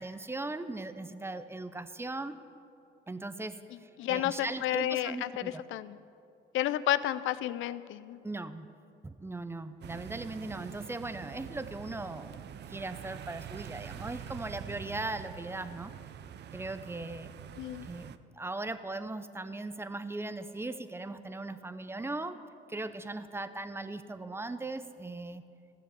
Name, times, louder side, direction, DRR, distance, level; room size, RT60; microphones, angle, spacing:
voice 1, 0.0-2.3 3.1-5.6 8.2-8.7 9.0-12.4 12.7-15.9 16.5-17.3 17.8-22.4 22.7-25.4, right 2 dB, 10° right, 11 dB, 0.6 m, -39 dB
voice 2, 4.0-6.0 6.5-8.2 17.6-17.9, left 13 dB, 80° left, 15 dB, 0.5 m, -31 dB
sound 1, 9.8-18.2, right 9 dB, 60° right, 0.5 m, -45 dB
14.5 x 7.1 x 6.9 m, 2.5 s
cardioid pair, 90°, 20 cm